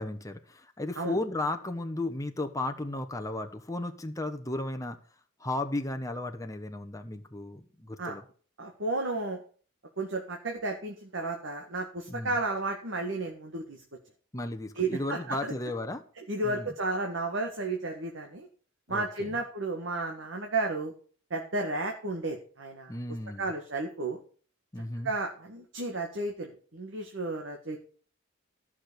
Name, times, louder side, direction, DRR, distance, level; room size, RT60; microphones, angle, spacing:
voice 1, 0.0-5.0 5.4-8.2 12.1-12.4 14.3-16.0 16.4-16.7 18.9-19.4 22.9-23.5 24.7-25.1, left 2 dB, 15° left, 5 dB, 1.0 m, -34 dB
voice 2, 8.6-9.4 10.0-13.8 14.8-15.5 16.3-18.5 18.9-20.9 21.3-22.9 23.4-24.2 25.0-27.8, right 2 dB, 65° right, 2 dB, 1.7 m, -33 dB
14.0 x 6.1 x 6.8 m, 0.43 s
head